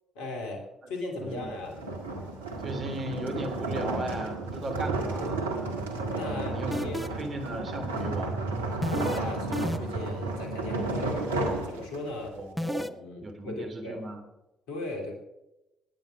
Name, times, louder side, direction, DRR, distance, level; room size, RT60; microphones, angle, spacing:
voice 1, 0.1-1.8 5.1-5.3 6.1-7.0 9.0-11.3 11.7-12.4 12.8-14.0 14.7-15.1, left 2 dB, 75° left, 3 dB, 2.9 m, -38 dB
voice 2, 1.2-1.5 2.6-5.5 6.2-8.4 12.4-12.9 13.2-14.2, right 1 dB, 45° right, 6 dB, 3.6 m, -36 dB
sound 1, 1.3-12.3, right 2 dB, 90° right, 1.8 m, -32 dB
sound 2, 6.7-7.3 8.8-9.2 9.5-10.1 12.6-12.9, left 1 dB, 5° left, 1.0 m, -31 dB
19.0 x 10.0 x 5.0 m, 0.93 s
hypercardioid pair, 45°, 0 cm